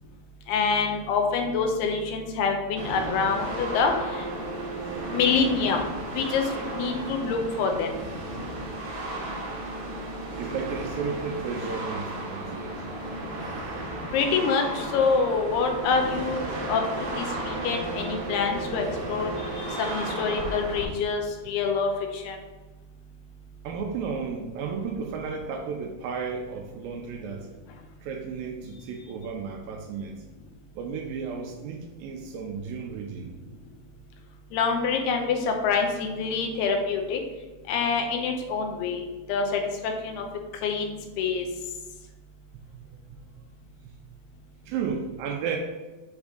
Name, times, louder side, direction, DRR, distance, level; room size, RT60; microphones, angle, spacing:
voice 1, 0.5-4.2 5.1-5.8 6.2-6.4 6.8-7.9 14.1-16.8 17.2-22.4 34.5-37.2 37.7-39.0 39.3-40.2 40.6-41.4, left 5 dB, 90° left, 3 dB, 2.9 m, -26 dB
sound 1, 2.8-20.8, right 2 dB, 60° right, 1.6 m, -34 dB
voice 2, 10.4-12.9 23.6-27.5 28.0-30.2 30.8-33.3 42.5-43.2 43.9-44.0 44.7-45.6, right 6 dB, 80° right, 2 dB, 2.2 m, -34 dB
7.1 x 3.6 x 5.1 m, 1.2 s
omnidirectional pair, 4.6 m